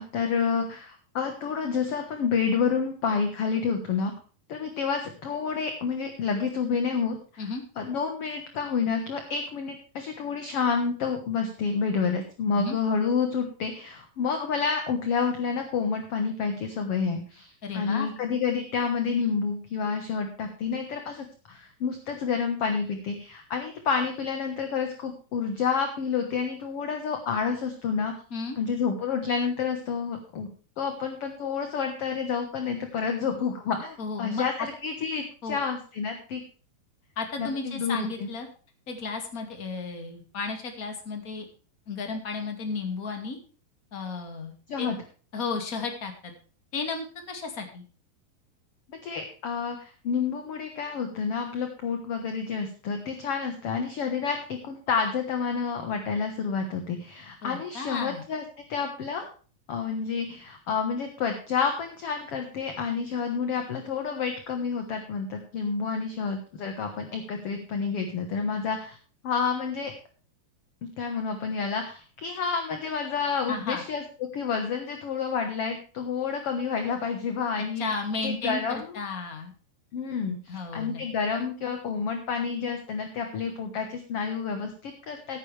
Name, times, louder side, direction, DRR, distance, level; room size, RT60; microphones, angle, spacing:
voice 1, 0.0-4.1 4.5-7.5 7.8-28.1 28.6-30.5 30.8-36.4 37.4-38.3 44.7-45.0 48.9-58.4 58.7-59.3 59.7-69.0 69.2-69.9 71.0-74.0 74.3-78.9 79.9-85.4, left 5 dB, 55° left, 5 dB, 1.8 m, -29 dB
voice 2, 17.6-18.1 28.3-28.6 34.0-34.4 35.4-35.6 37.2-38.5 38.9-41.5 41.9-43.4 43.9-44.9 45.3-46.3 46.7-47.8 57.4-58.2 73.5-73.8 77.8-79.5 80.5-81.0, left 4 dB, 30° left, 4 dB, 2.1 m, -33 dB
16.0 x 9.4 x 3.4 m, 0.39 s
omnidirectional pair, 4.2 m